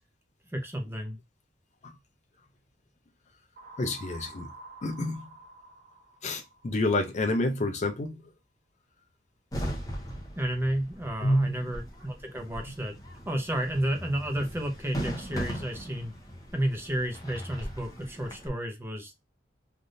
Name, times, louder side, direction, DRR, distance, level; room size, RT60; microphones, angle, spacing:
voice 1, 0.5-1.2 10.4-12.9 13.3-16.1 16.5-19.1, right 1 dB, 15° right, 0.7 m, -31 dB
sound 1, 3.6-7.4, right 3 dB, 50° right, 0.8 m, -49 dB
voice 2, 3.8-4.5 4.8-5.3 6.2-8.2 11.2-11.7, left 1 dB, 40° left, 0.5 m, -28 dB
sound 2, 9.5-18.5, equal, 20° left, 0.8 m, -38 dB
3.3 x 2.6 x 2.6 m
head